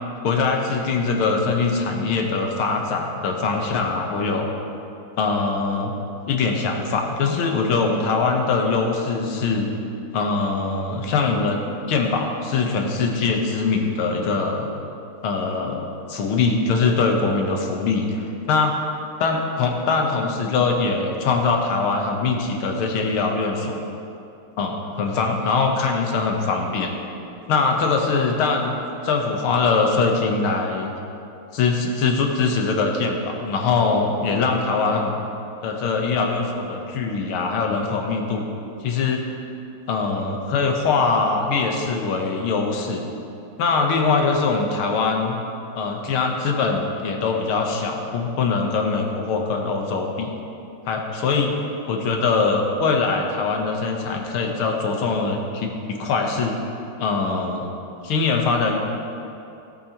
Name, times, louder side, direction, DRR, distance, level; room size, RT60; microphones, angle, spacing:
voice 1, 0.2-4.5 5.2-5.9 6.3-9.7 10.1-11.6 11.9-14.7 15.2-18.8 19.2-23.8 24.6-26.9 27.5-28.8 29.0-30.9 31.5-35.2 35.6-38.5 38.8-39.2 39.9-43.1 43.6-45.4 45.8-50.3 50.9-51.5 51.9-56.6 57.0-57.7 58.0-58.8, left 4 dB, 85° left, 2 dB, 1.9 m, -22 dB
17.0 x 8.4 x 2.9 m, 2.7 s
omnidirectional pair, 2.3 m